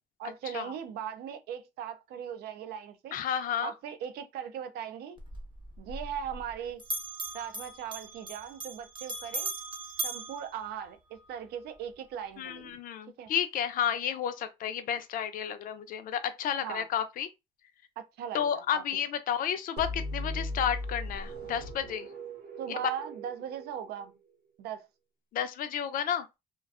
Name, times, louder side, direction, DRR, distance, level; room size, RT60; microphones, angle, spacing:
voice 1, 0.2-3.2 3.6-5.2 5.8-6.8 7.3-9.5 10.0-12.8 13.2-13.3 16.6-16.9 18.0-19.0 22.6-24.2 24.6-24.9, right 9 dB, 70° right, 0.5 m, -39 dB
voice 2, 3.1-3.7 12.4-17.3 18.3-22.1 22.7-22.8 25.3-26.3, left 9 dB, 55° left, 0.5 m, -32 dB
Bell, 5.2-6.5 6.8-11.3, right 2 dB, 30° right, 0.7 m, -39 dB
sound 1, 19.8-24.5, left 1 dB, 90° right, 1.0 m, -39 dB
2.4 x 2.2 x 2.4 m
cardioid pair, 110°, 17 cm